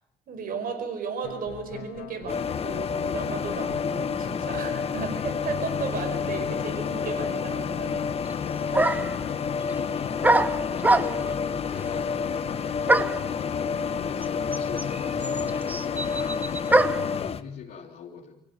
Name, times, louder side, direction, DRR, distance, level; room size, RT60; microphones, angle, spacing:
voice 1, 0.3-8.0, right 5 dB, 55° right, 8 dB, 5.2 m, -35 dB
sound 1, 1.2-17.3, left 10 dB, 80° left, 1.7 m, -41 dB
sound 2, 2.3-17.4, left 6 dB, 35° left, 1.2 m, -29 dB
sound 3, 8.3-8.4 8.7-9.2 10.2-11.4 12.9-13.3 14.2-14.3 14.5-17.1, right 2 dB, 10° right, 0.9 m, -23 dB
voice 2, 10.3-13.4 14.0-16.5 17.0-18.3, left 6 dB, 55° left, -6 dB, 3.5 m, -43 dB
25.0 x 16.0 x 9.5 m, 0.78 s
cardioid pair, 110°, 17 cm